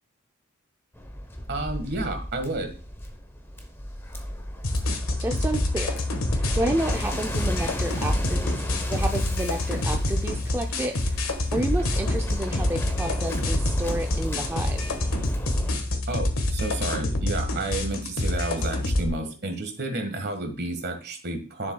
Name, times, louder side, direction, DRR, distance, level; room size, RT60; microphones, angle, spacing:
Waves surf, 0.9-15.7, equal, 10° left, 0.8 m, -35 dB
voice 1, 1.5-2.7 16.1-21.7, right 2 dB, 50° right, 6 dB, 1.5 m, -31 dB
sound 1, 4.6-19.1, left 1 dB, 85° left, 1.4 m, -27 dB
voice 2, 5.2-6.0 6.3-8.6 8.9-11.2 11.5-14.9, right 1 dB, 10° right, 3 dB, 0.4 m, -30 dB
10.5 x 7.0 x 2.3 m, 0.36 s
head